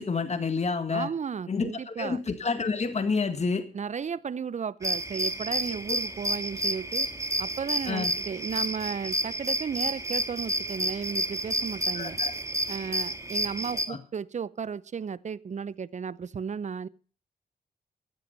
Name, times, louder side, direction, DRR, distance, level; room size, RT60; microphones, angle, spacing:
voice 1, 0.0-1.1 1.5-3.7 7.8-8.1 11.9-12.3 13.9-14.0, left 4 dB, 40° left, 1.7 m, -29 dB
voice 2, 0.9-2.2 3.7-7.1 7.4-12.2 12.7-16.9, right 6 dB, 45° right, 0.7 m, -34 dB
sound 1, 4.8-13.9, right 1 dB, 20° right, 1.7 m, -30 dB
14.0 x 9.0 x 5.3 m
supercardioid pair, 50°, 17 cm